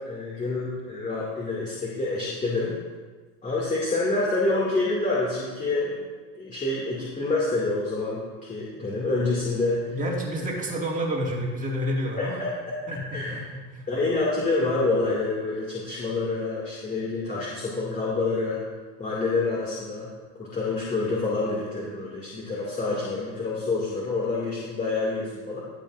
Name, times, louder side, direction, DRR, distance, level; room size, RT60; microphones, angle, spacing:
voice 1, 0.0-2.7 3.4-10.0 12.2-12.8 13.1-13.5 13.9-18.6 19.0-20.1 20.4-25.6, left 3 dB, 20° left, -5 dB, 2.5 m, -27 dB
voice 2, 9.9-12.5 12.9-13.9, equal, 20° right, -1 dB, 2.3 m, -29 dB
16.0 x 7.5 x 2.6 m, 1.4 s
supercardioid pair, 110°, 37 cm